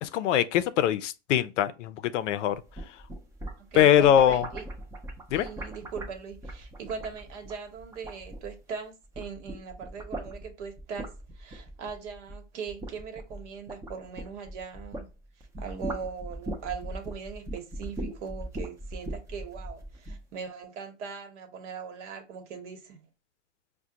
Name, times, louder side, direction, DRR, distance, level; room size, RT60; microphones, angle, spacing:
voice 1, 0.0-2.6 3.8-4.5 5.3-5.5, left 10 dB, 70° left, 0.5 m, -22 dB
sound 1, 2.5-8.8 9.0-15.1 15.4-20.2, right 1 dB, 10° right, 0.4 m, -39 dB
voice 2, 3.6-4.6 5.3-15.1 15.6-23.0, right 6 dB, 65° right, 1.0 m, -40 dB
4.8 x 2.2 x 2.7 m
hypercardioid pair, 120°, 37 cm